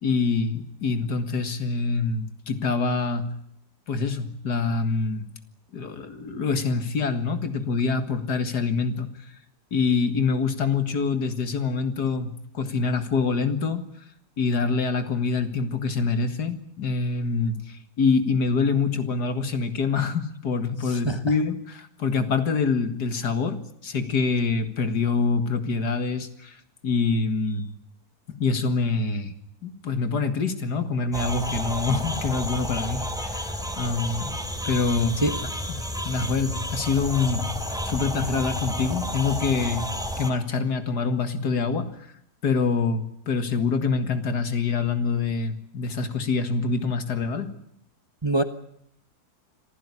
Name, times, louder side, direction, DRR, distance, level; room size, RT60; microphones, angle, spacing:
voice 1, 0.0-3.3 3.9-5.2 5.7-9.1 9.7-13.8 14.4-26.6 26.8-27.7 28.3-29.3 29.6-34.4 34.6-35.2 36.0-37.5 37.8-39.9 40.2-41.9 42.4-47.5, left 4 dB, 75° left, 9 dB, 2.5 m, -25 dB
voice 2, 20.8-21.3 35.2-35.4 48.2-48.4, right 2 dB, 20° right, 9 dB, 1.1 m, -25 dB
sound 1, 31.1-40.3, equal, ahead, 2.8 m, -31 dB
26.0 x 15.5 x 9.9 m, 0.74 s
omnidirectional pair, 1.7 m